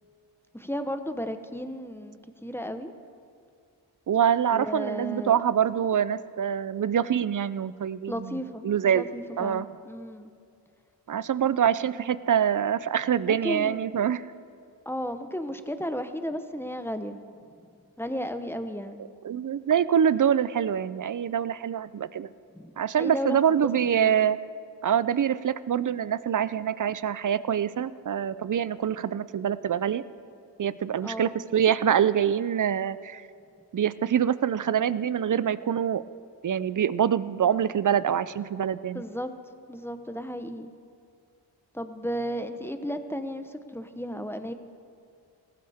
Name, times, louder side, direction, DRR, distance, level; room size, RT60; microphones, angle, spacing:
voice 1, 0.5-2.9 4.5-5.4 8.1-8.6 8.9-10.3 13.2-13.9 14.9-17.2 18.0-19.0 22.5-23.7 24.0-24.2 31.0-31.4 38.9-39.3 39.7-40.7 41.7-44.5, equal, 5° left, 9 dB, 0.9 m, -34 dB
voice 2, 4.1-8.4 8.6-9.7 11.1-14.2 19.2-22.3 22.8-24.4 24.8-30.0 30.6-33.2 33.7-36.0 36.4-39.0, right 9 dB, 45° right, 16 dB, 0.5 m, -25 dB
18.5 x 15.0 x 3.6 m, 2.3 s
cardioid pair, 45°, 46 cm